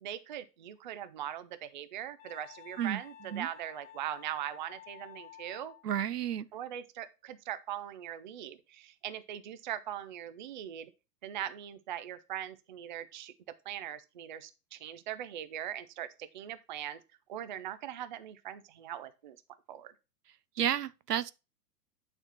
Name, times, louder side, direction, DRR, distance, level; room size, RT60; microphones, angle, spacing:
voice 1, 0.0-5.7 6.5-10.9 11.2-13.3 13.7-17.0 17.3-19.4 19.7-19.9, right 11 dB, 35° right, 0.4 m, -41 dB
Wind instrument woodwind instrument, 2.2-5.8, left 11 dB, 30° left, 2.5 m, -52 dB
voice 2, 5.8-6.5 20.6-21.3, right 10 dB, 70° right, 0.6 m, -31 dB
8.8 x 4.3 x 4.2 m
figure-of-eight pair, 105°, 48 cm